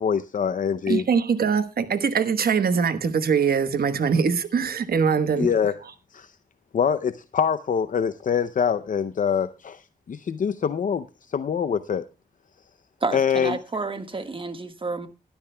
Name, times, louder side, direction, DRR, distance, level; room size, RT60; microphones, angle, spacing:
voice 1, 0.0-1.0 5.4-5.7 6.1-6.3 6.7-12.0 13.1-13.6, left 7 dB, 60° left, 0.6 m, -24 dB
voice 2, 0.9-5.5, right 6 dB, 75° right, 1.2 m, -22 dB
voice 3, 13.0-15.1, right 3 dB, 35° right, 1.5 m, -30 dB
20.0 x 12.0 x 2.2 m
wide cardioid pair, 95°, 16 cm